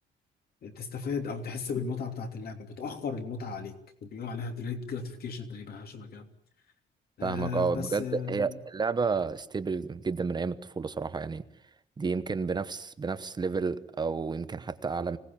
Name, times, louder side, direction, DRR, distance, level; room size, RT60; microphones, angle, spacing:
voice 1, 0.6-3.8 4.0-6.3 7.2-8.6, left 5 dB, 50° left, 3.2 m, -36 dB
voice 2, 7.2-11.4 12.0-15.2, right 4 dB, 20° right, 1.0 m, -31 dB
25.5 x 18.5 x 8.9 m
cardioid pair, 180°, 20 cm